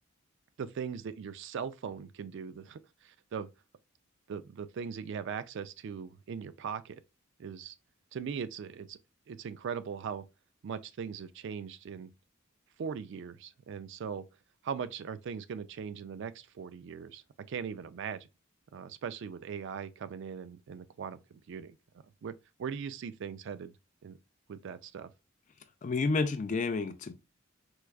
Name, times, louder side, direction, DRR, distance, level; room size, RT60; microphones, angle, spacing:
voice 1, 0.6-3.5 4.3-7.0 7.4-7.7 8.1-9.0 9.3-10.2 10.6-12.1 12.8-14.2 14.6-17.2 17.5-18.3 18.7-21.8 22.2-22.3 22.6-23.7 24.0-24.2 24.5-25.1, right 6 dB, 60° right, 0.3 m, -39 dB
voice 2, 25.8-27.1, left 3 dB, 40° left, 0.4 m, -30 dB
4.6 x 2.2 x 2.2 m
head